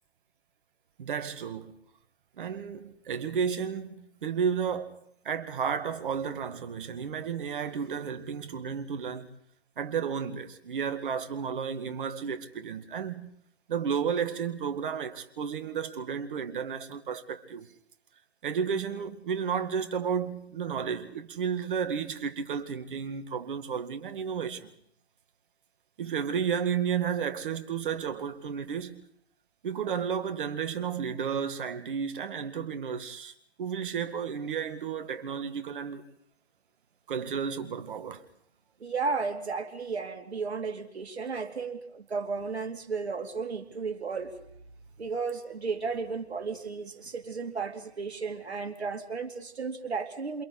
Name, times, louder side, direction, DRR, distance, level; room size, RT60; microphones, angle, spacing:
voice 1, 1.0-1.7 2.4-5.0 5.2-9.3 9.8-13.3 13.7-17.7 18.4-24.7 26.0-29.0 29.6-36.1 37.1-38.2, right 7 dB, 50° right, 2.0 m, -32 dB
voice 2, 38.8-44.3 45.0-50.4, right 4 dB, 75° right, 2.9 m, -34 dB
28.0 x 28.0 x 4.1 m
hypercardioid pair, 140°, 33 cm